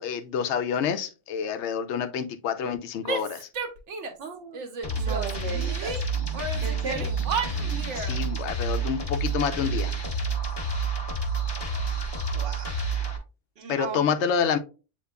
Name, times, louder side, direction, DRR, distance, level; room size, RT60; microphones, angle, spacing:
voice 1, 0.0-3.5 7.9-9.9 13.7-14.6, left 7 dB, 75° left, 9 dB, 0.9 m, -28 dB
Female speech woman speaking / Yell, 3.0-4.3 4.5-6.0 6.3-8.2, right 4 dB, 80° right, 1.1 m, -33 dB
voice 2, 4.2-4.6 5.0-6.0 6.6-7.1 12.3-12.8 13.6-14.0, right 4 dB, 55° right, -4 dB, 1.0 m, -35 dB
sound 1, 4.8-13.2, right 3 dB, 25° left, 0.9 m, -29 dB
8.0 x 2.9 x 2.2 m, 0.32 s
omnidirectional pair, 1.2 m